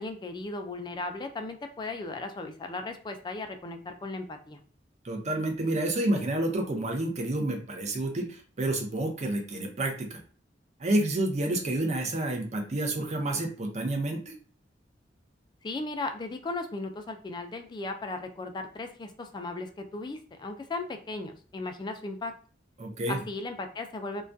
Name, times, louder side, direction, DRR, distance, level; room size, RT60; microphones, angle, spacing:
voice 1, 0.0-4.6 15.6-22.3 23.1-24.2, left 2 dB, 25° left, 6 dB, 0.3 m, -36 dB
voice 2, 5.0-10.2 10.8-14.3 22.8-23.2, right 1 dB, 40° right, 3 dB, 0.5 m, -29 dB
2.3 x 2.2 x 2.5 m, 0.41 s
head